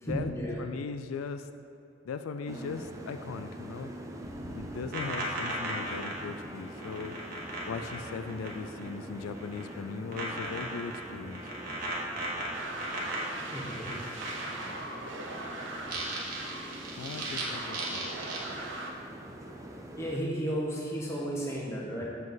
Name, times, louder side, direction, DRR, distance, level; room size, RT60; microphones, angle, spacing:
voice 1, 0.0-0.6 13.5-14.0 19.9-22.0, right 1 dB, 15° left, -4 dB, 1.2 m, -33 dB
voice 2, 0.6-1.5 2.0-3.9 4.5-7.1 7.7-11.4 17.0-18.1, left 5 dB, 90° left, 9 dB, 0.4 m, -38 dB
sound 1, 2.5-20.2, right 1 dB, 15° right, 0.4 m, -44 dB
sound 2, 4.2-8.9 9.1-9.7 10.1-14.9 15.8-17.4 17.7-18.4, right 2 dB, 45° right, 1.3 m, -37 dB
sound 3, 12.5-18.9, right 2 dB, 65° right, 0.9 m, -40 dB
7.9 x 7.4 x 3.9 m, 2.8 s
head